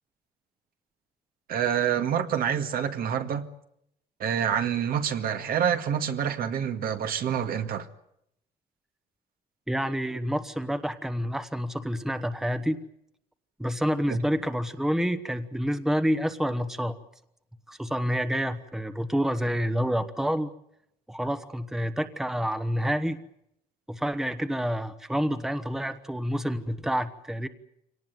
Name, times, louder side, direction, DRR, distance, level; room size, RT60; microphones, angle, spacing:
voice 1, 1.5-3.4 4.2-7.9 14.1-14.2, right 8 dB, 60° right, 1.9 m, -27 dB
voice 2, 9.7-12.8 13.6-17.0 17.7-20.5 21.1-23.2 23.9-27.5, equal, ahead, 1.2 m, -28 dB
24.5 x 18.5 x 9.2 m
cardioid pair, 110°, 17 cm